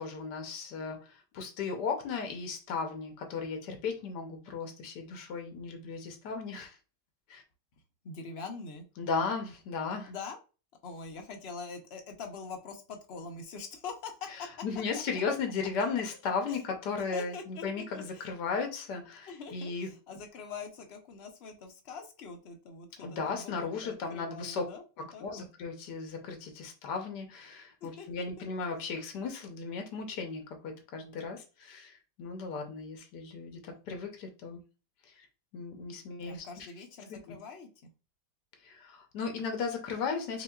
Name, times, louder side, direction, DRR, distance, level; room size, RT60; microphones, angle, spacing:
voice 1, 0.0-6.8 7.3-7.4 9.0-10.1 14.6-19.9 23.0-24.6 25.0-34.6 35.1-35.2 35.5-36.7 37.1-37.4 38.6-40.4, left 5 dB, 75° left, 4 dB, 1.4 m, -36 dB
voice 2, 8.0-8.9 10.1-10.4 10.8-14.1 14.4-14.5 14.9-15.0 16.5-16.6 17.1-18.3 19.3-25.4 27.8-28.1 36.2-37.9, left 4 dB, 55° left, 3 dB, 0.7 m, -44 dB
5.5 x 2.5 x 2.3 m, 0.33 s
omnidirectional pair, 1.8 m